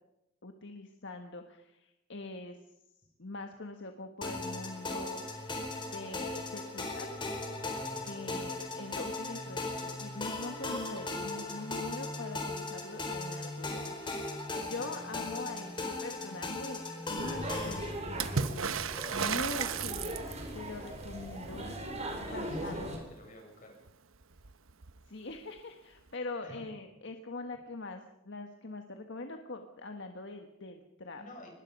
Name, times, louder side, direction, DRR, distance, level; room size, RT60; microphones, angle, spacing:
voice 1, 0.4-2.6 3.2-5.2 5.9-7.2 8.0-14.2 14.7-16.8 17.1-18.5 19.1-20.2 20.5-21.7 22.2-23.0 25.1-31.2, left 2 dB, 60° left, 5 dB, 1.5 m, -43 dB
sound 1, 4.2-17.9, left 2 dB, 25° left, 4.2 m, -38 dB
voice 2, 14.7-15.0 22.2-23.7 26.4-26.6 31.1-31.5, left 1 dB, 40° left, 1 dB, 7.2 m, -50 dB
sound 2, 17.2-23.0, right 1 dB, 35° right, 4.3 m, -39 dB
Water / Splash splatter, 18.2-20.6 23.9-24.0 24.2-25.0 26.1-26.2, right 6 dB, 75° right, 1.0 m, -34 dB
23.5 x 20.5 x 5.4 m, 0.88 s
head